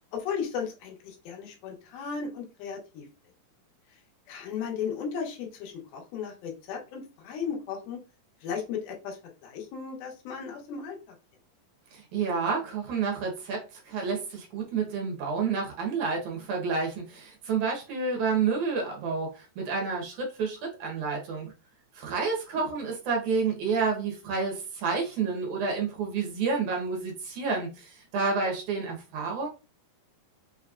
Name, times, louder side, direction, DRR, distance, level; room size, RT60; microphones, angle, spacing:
voice 1, 0.1-3.1 4.3-8.0 8.4-11.0 22.5-22.7, left 6 dB, 85° left, 1 dB, 2.9 m, -35 dB
voice 2, 11.9-21.5 21.9-29.5, right 5 dB, 65° right, 0 dB, 2.3 m, -29 dB
6.0 x 3.1 x 2.4 m, 0.32 s
omnidirectional pair, 4.1 m